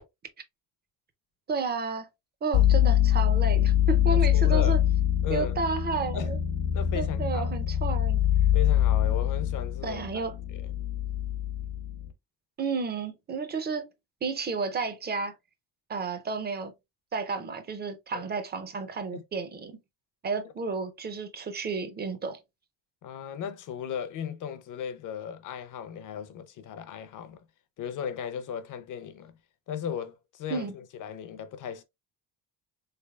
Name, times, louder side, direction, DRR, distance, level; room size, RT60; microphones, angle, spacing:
voice 1, 1.5-2.1 2.4-4.8 5.3-6.4 6.9-8.2 9.8-10.4 12.6-13.9 14.2-15.3 15.9-16.7 17.1-19.8 20.2-22.4 30.5-30.7, right 4 dB, 25° right, 0.4 m, -32 dB
sound 1, 2.5-12.1, left 11 dB, 70° left, 0.8 m, -24 dB
voice 2, 4.1-4.8 5.2-5.6 6.1-6.3 6.7-7.5 8.5-10.3 10.6-10.7 18.1-18.2 19.1-19.2 23.0-27.4 27.8-29.4 29.7-31.8, left 8 dB, 45° left, 0.5 m, -36 dB
3.7 x 3.3 x 2.2 m
cardioid pair, 175°, 44 cm